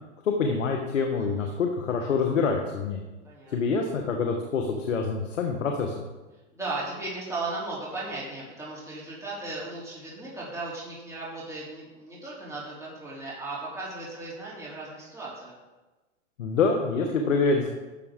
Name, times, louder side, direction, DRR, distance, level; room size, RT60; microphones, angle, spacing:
voice 1, 0.2-3.0 3.5-6.1 16.4-17.7, left 4 dB, 90° left, 3 dB, 1.3 m, -26 dB
voice 2, 1.2-1.6 3.2-3.5 6.5-15.5, right 2 dB, 10° right, -7 dB, 3.2 m, -36 dB
11.5 x 7.0 x 3.7 m, 1.2 s
hypercardioid pair, 120°, 37 cm